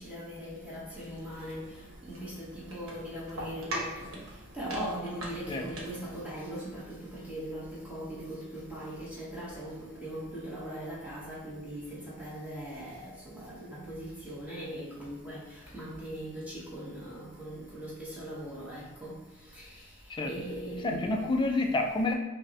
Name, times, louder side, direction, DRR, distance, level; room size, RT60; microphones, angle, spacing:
voice 1, 0.0-1.7 2.1-4.1 4.5-15.4 15.7-19.1 19.5-19.6 20.3-21.2, right 1 dB, 5° right, -7 dB, 0.9 m, -40 dB
sound 1, 0.9-6.1, right 1 dB, 70° right, 1.0 m, -42 dB
voice 2, 20.8-22.1, left 2 dB, 20° left, 2 dB, 0.4 m, -28 dB
5.3 x 2.0 x 2.7 m, 1.1 s
head